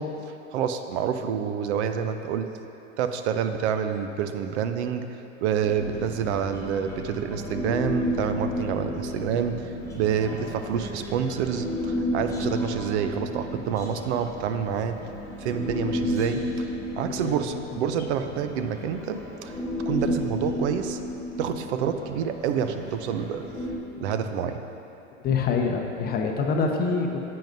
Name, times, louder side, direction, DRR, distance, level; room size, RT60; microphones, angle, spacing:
voice 1, 0.0-2.5 3.0-5.1 5.4-15.0 15.4-19.6 19.9-21.0 21.4-23.5 24.0-24.6, right 8 dB, 60° right, 8 dB, 0.6 m, -28 dB
Human voice, 5.6-23.8, left 1 dB, 10° left, 1.2 m, -32 dB
voice 2, 25.2-27.2, left 4 dB, 25° left, 2 dB, 0.7 m, -25 dB
10.5 x 7.7 x 2.6 m, 2.8 s
hypercardioid pair, 115°, 37 cm